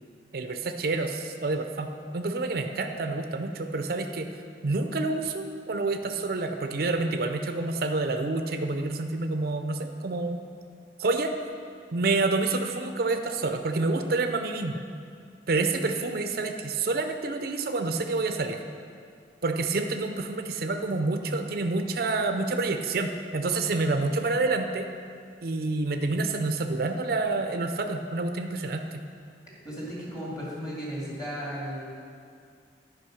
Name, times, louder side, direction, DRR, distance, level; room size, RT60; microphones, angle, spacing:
voice 1, 0.3-4.3 4.6-10.4 11.0-11.3 11.9-14.8 15.5-18.6 19.4-24.9 25.4-29.0, right 3 dB, 55° right, 6 dB, 0.5 m, -28 dB
voice 2, 29.6-31.8, equal, 20° left, -6 dB, 2.3 m, -35 dB
10.0 x 5.2 x 6.3 m, 2.3 s
head